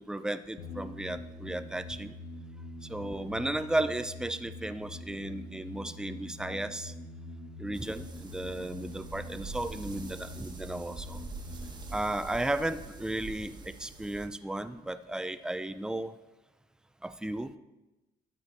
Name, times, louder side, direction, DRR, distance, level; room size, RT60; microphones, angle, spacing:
voice 1, 0.0-2.1 2.9-6.9 7.6-11.2 11.9-16.1 17.0-17.6, right 1 dB, 5° right, 11 dB, 0.5 m, -34 dB
sound 1, 0.6-13.8, left 1 dB, 60° left, 1.9 m, -45 dB
sound 2, 7.7-14.3, right 4 dB, 25° right, 1.3 m, -45 dB
11.5 x 8.0 x 4.1 m, 1.1 s
cardioid pair, 110°, 17 cm